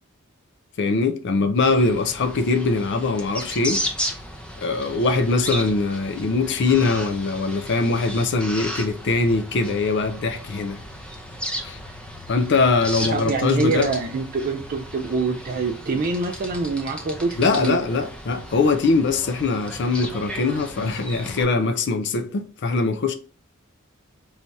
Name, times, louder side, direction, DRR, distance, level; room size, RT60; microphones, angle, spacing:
voice 1, 0.8-3.8 4.6-10.8 11.6-11.8 12.3-13.9 17.4-23.1, left 3 dB, 55° left, 0.5 m, -22 dB
sound 1, 1.6-21.4, equal, 5° left, 0.5 m, -35 dB
voice 2, 13.1-17.8, right 3 dB, 45° right, 0.4 m, -25 dB
3.2 x 2.7 x 4.5 m
head